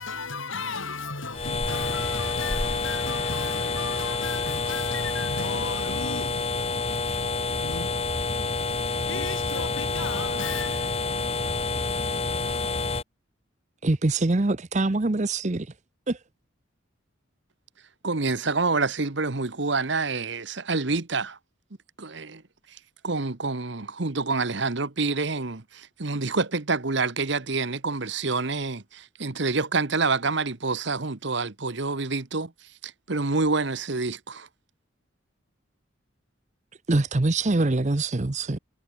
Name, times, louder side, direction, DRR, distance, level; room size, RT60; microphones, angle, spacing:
voice 1, 0.0-6.7 7.6-7.9 9.1-11.1, left 4 dB, 70° left, 5.6 m, -35 dB
sound 1, 1.3-13.0, left 3 dB, 30° left, 1.6 m, -28 dB
voice 2, 13.8-15.7 16.1-16.2 36.9-38.6, right 2 dB, 35° right, 0.7 m, -24 dB
voice 3, 18.0-21.4 22.0-22.4 23.0-32.5 32.8-34.5, right 3 dB, 60° right, 1.2 m, -27 dB
head